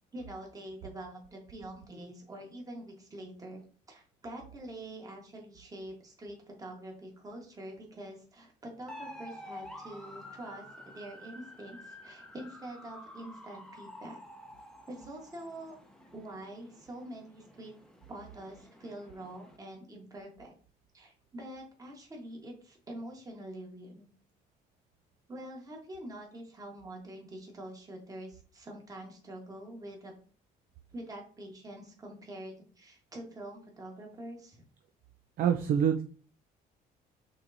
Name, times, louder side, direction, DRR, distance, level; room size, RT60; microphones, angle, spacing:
voice 1, 0.1-3.6 3.9-14.2 14.9-15.8 16.1-17.7 18.1-20.5 20.9-24.1 25.3-30.1 30.9-34.6, right 1 dB, 20° right, 0 dB, 1.3 m, -45 dB
sound 1, 8.9-19.6, left 1 dB, 5° left, 0.7 m, -50 dB
voice 2, 35.4-36.0, right 8 dB, 60° right, 7 dB, 0.4 m, -25 dB
6.2 x 3.0 x 2.6 m, 0.43 s
cardioid pair, 110°, 17 cm